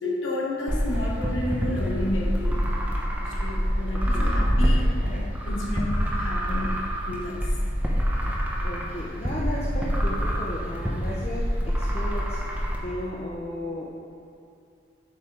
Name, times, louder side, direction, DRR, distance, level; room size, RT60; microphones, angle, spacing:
voice 1, 0.0-2.6 3.2-7.5, left 1 dB, 90° left, -2 dB, 1.1 m, -31 dB
sound 1, 0.7-12.8, equal, 10° right, 0.8 m, -26 dB
voice 2, 3.9-4.3 8.6-13.9, left 1 dB, 35° left, -5 dB, 0.6 m, -35 dB
7.3 x 4.8 x 4.7 m, 2.5 s
head